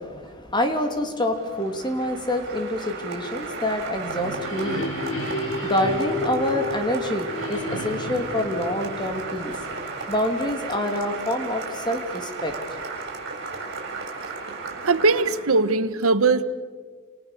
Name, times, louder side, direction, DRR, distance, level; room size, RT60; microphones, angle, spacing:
voice 1, 0.0-4.9 5.6-9.5 10.1-12.6, left 1 dB, 20° left, 5 dB, 2.9 m, -27 dB
Applause, 1.3-15.8, right 4 dB, 50° right, 7.3 m, -35 dB
sound 1, 3.9-10.3, left 2 dB, 65° left, 4.6 m, -32 dB
voice 2, 14.8-16.4, right 3 dB, 80° right, 12 dB, 1.3 m, -20 dB
29.5 x 28.0 x 6.9 m, 1.5 s
head